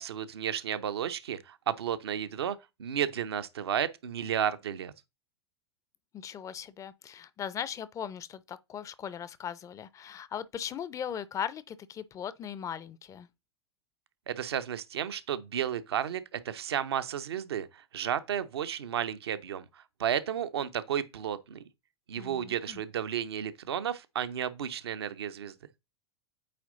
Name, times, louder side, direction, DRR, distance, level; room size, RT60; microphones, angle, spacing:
voice 1, 0.0-4.9 14.3-21.6 22.1-25.5, right 9 dB, 70° right, 0.7 m, -33 dB
voice 2, 6.1-13.3 22.2-22.8, left 8 dB, 25° left, 0.5 m, -39 dB
8.6 x 2.9 x 3.8 m
figure-of-eight pair, 90°, 14 cm